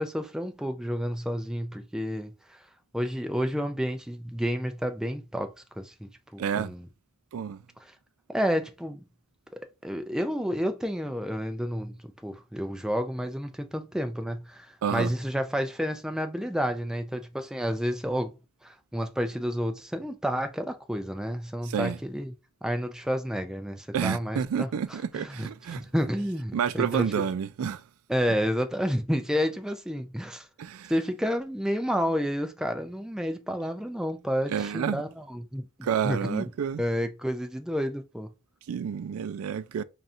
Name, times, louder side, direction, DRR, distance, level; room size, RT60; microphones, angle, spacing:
voice 1, 0.0-2.3 2.9-5.9 6.3-6.9 7.8-7.9 8.3-9.0 9.8-12.0 12.2-18.3 18.6-22.3 22.6-27.3 28.1-30.5 30.9-35.6 36.0-36.5 36.8-38.3, equal, 5° right, 0.4 m, -30 dB
voice 2, 6.4-6.7 7.3-7.6 14.8-15.1 21.7-22.0 23.9-25.8 26.5-27.8 30.6-30.9 34.5-35.0 35.8-36.8 38.7-39.8, right 7 dB, 75° right, 0.3 m, -29 dB
5.5 x 2.4 x 2.5 m
head